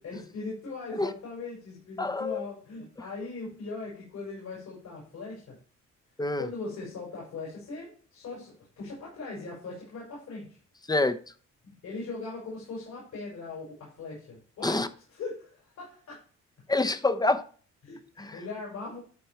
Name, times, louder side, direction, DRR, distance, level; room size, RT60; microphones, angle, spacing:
voice 1, 0.0-5.6 6.4-10.6 11.6-14.8 15.1-16.3 17.8-19.0, left 3 dB, 65° left, 5.3 m, -40 dB
voice 2, 2.0-2.4 6.2-6.5 10.9-11.2 14.6-14.9 16.7-17.4 18.2-18.4, left 2 dB, 15° left, 1.0 m, -26 dB
11.5 x 4.5 x 4.5 m
cardioid pair, 90°, 30 cm